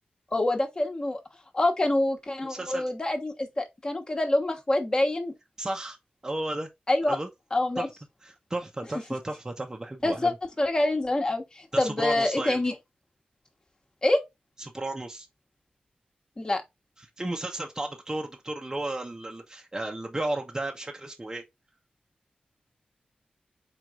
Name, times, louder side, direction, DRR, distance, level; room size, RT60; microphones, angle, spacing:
voice 1, 0.3-1.2 1.5-5.3 6.9-7.2 7.5-7.9 10.0-12.7 14.0-14.2 16.4-16.6, left 2 dB, 30° left, 1.2 m, -26 dB
voice 2, 2.4-2.8 5.6-6.0 6.2-6.7 7.1-7.3 7.8-7.9 8.2-10.3 11.7-12.6 14.6-15.3 17.0-21.4, right 2 dB, 20° right, 0.7 m, -33 dB
4.6 x 4.1 x 2.4 m
wide cardioid pair, 125°, 3 cm